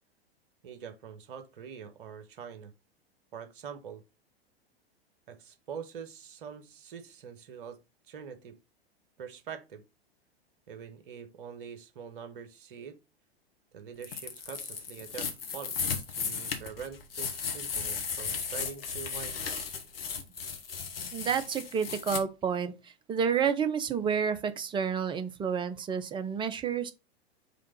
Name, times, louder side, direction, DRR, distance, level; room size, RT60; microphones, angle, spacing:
voice 1, 0.6-2.7 3.3-4.0 5.3-7.8 8.1-8.6 9.2-9.8 10.7-13.0 13.7-19.5, right 7 dB, 55° right, 1.3 m, -44 dB
sound 1, 14.0-22.2, left 6 dB, 65° left, 1.4 m, -35 dB
voice 2, 21.1-26.9, right 7 dB, 15° right, 0.7 m, -30 dB
5.1 x 3.7 x 5.4 m
figure-of-eight pair, 95°, 31 cm